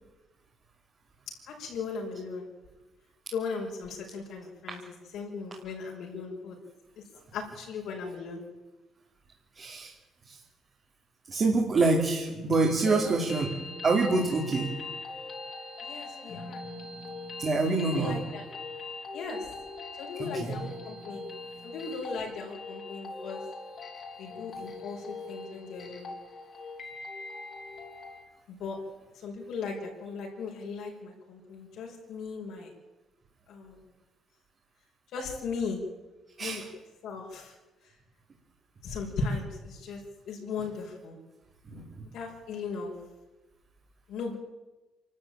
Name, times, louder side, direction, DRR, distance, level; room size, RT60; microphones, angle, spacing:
voice 1, 1.5-2.5 3.3-4.8 5.1-6.6 7.3-8.4 12.8-13.3 15.8-16.6 17.6-18.4 19.1-19.5 20.0-21.3 21.6-23.4 24.2-26.1 28.5-28.8 29.2-32.7 33.5-33.8 35.1-35.8 36.4-36.7 37.0-37.5 38.8-40.0 40.3-41.2 42.1-42.9 44.1-44.3, left 4 dB, 65° left, -1 dB, 5.6 m, -37 dB
voice 2, 9.5-9.9 10.3-10.4 11.3-13.5 13.8-14.7 17.4-18.2 20.2-20.6 36.4-36.7 40.6-40.7 41.7-42.1, right 3 dB, 30° right, -1 dB, 2.8 m, -26 dB
sound 1, 12.3-28.3, left 3 dB, 35° left, 3.6 m, -41 dB
27.5 x 13.0 x 9.0 m, 1.1 s
cardioid pair, 165°, 0 cm